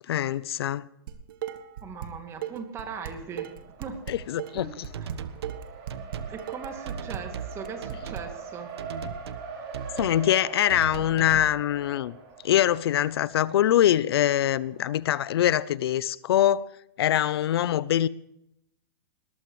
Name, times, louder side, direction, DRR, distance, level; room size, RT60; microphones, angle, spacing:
voice 1, 0.1-0.9 4.1-4.9 10.0-12.1 12.4-16.7 17.0-18.1, left 11 dB, 70° left, 0.6 m, -23 dB
Dishes pots and pans, 1.1-2.1 2.4-8.2, right 11 dB, 55° right, 1.5 m, -37 dB
voice 2, 1.8-3.5 3.8-4.0 4.6-5.1 6.3-8.7, right 6 dB, 20° right, 2.5 m, -39 dB
Race car auto racing, 2.7-15.4, right 5 dB, 40° right, 5.3 m, -43 dB
sound 1, 4.9-5.6 5.9-6.3 6.8-7.5 7.8-8.2 8.8-9.4 9.7-10.2 10.7-11.5, right 7 dB, 80° right, 1.4 m, -37 dB
21.0 x 19.0 x 3.2 m
hypercardioid pair, 155°, 13 cm